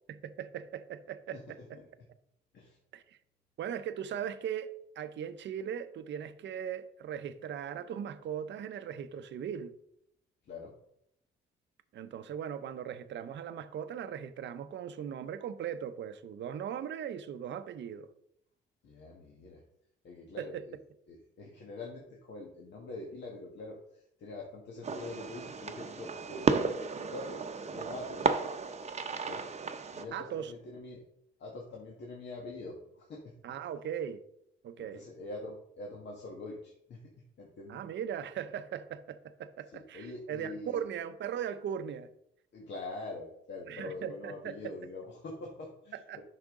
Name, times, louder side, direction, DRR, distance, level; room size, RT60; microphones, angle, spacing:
voice 1, 0.1-1.8 2.9-3.2 3.6-9.7 11.9-18.1 20.4-20.6 30.1-30.5 33.4-34.2 34.6-35.0 37.7-42.1 43.6-44.5 46.1-46.2, right 9 dB, 65° right, 0.7 m, -39 dB
voice 2, 1.3-1.9 2.5-2.8 10.4-10.7 18.8-19.6 20.0-20.8 21.1-27.4 27.7-28.3 29.2-29.4 29.9-31.0 31.4-33.3 34.8-37.0 37.4-37.8 39.7-40.8 42.5-46.2, left 2 dB, 65° left, 1.5 m, -44 dB
Fireworks, 24.8-30.0, right 5 dB, 35° right, 0.8 m, -33 dB
8.9 x 5.8 x 3.7 m
cardioid pair, 90°, 20 cm